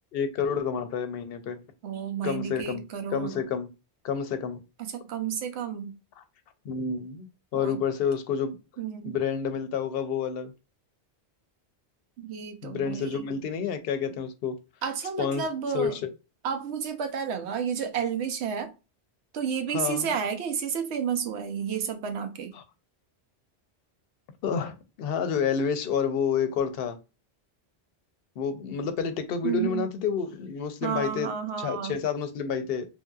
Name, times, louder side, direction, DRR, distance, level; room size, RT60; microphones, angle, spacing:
voice 1, 0.1-1.6 2.2-2.8 3.1-3.7 4.0-4.6 6.6-7.3 7.5-8.6 9.0-10.5 12.6-14.6 15.2-15.4 15.7-16.0 19.7-20.1 22.5-22.6 24.4-27.0 28.4-32.9, left 6 dB, 65° left, 0.7 m, -29 dB
voice 2, 1.8-3.4 4.9-5.9 7.5-7.8 8.8-9.2 12.2-13.3 14.8-16.0 16.4-18.7 19.3-22.5 29.4-29.8 30.8-32.0, right 7 dB, 80° right, 0.9 m, -31 dB
3.1 x 2.6 x 2.3 m
omnidirectional pair, 1.1 m